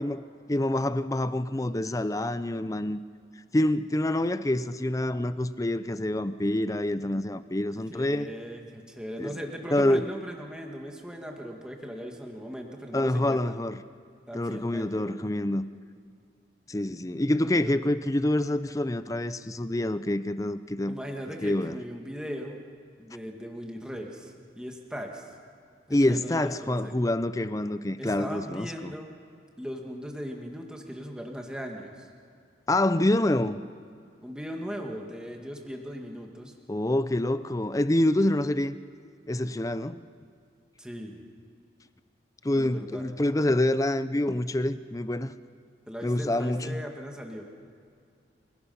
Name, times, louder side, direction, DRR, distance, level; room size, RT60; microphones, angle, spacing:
voice 1, 0.0-3.0 3.5-8.3 9.2-9.4 9.7-10.1 12.9-13.8 14.3-15.7 16.7-21.0 21.3-21.8 25.9-28.9 32.7-33.6 36.7-38.8 39.3-40.0 42.4-45.3 46.0-46.8, left 1 dB, 20° left, 13 dB, 0.5 m, -26 dB
voice 2, 7.9-13.6 14.3-15.3 17.6-17.7 20.9-22.6 23.0-25.3 25.9-26.9 28.0-29.1 29.6-32.1 34.2-36.5 40.8-41.2 42.5-43.0 45.9-47.4, equal, 5° right, 1 dB, 1.9 m, -38 dB
29.5 x 17.5 x 5.6 m, 2.3 s
head